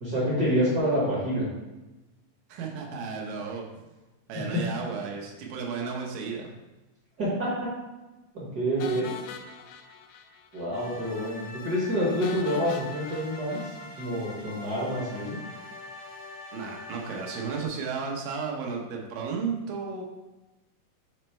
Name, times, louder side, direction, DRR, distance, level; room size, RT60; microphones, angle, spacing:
voice 1, 0.0-1.5 4.3-4.4 7.2-7.7 8.3-9.1 10.5-15.4, equal, 55° right, -6 dB, 1.1 m, -28 dB
voice 2, 2.5-3.8 4.3-6.5 16.5-20.0, right 5 dB, 85° right, 0 dB, 2.7 m, -33 dB
sound 1, 8.8-10.7 11.0-11.1 11.4-11.5 12.2-14.5, left 7 dB, 80° left, 2.1 m, -42 dB
sound 2, 10.7-17.7, left 2 dB, 65° left, 0.8 m, -43 dB
7.2 x 3.2 x 4.4 m, 1.1 s
omnidirectional pair, 3.8 m